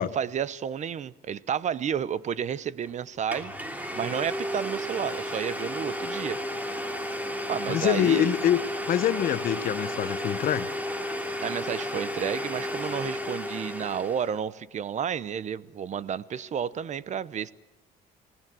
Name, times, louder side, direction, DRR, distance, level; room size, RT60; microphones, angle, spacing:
voice 1, 0.0-6.4 7.5-8.3 11.4-17.5, right 8 dB, 45° right, 18 dB, 0.8 m, -31 dB
Domestic sounds home sounds, 2.8-2.9 3.3-14.4, equal, 10° right, 2.8 m, -33 dB
voice 2, 7.7-8.6 8.9-10.7, left 10 dB, 55° left, 14 dB, 1.1 m, -25 dB
27.5 x 17.5 x 7.6 m, 0.94 s
cardioid pair, 110°, 17 cm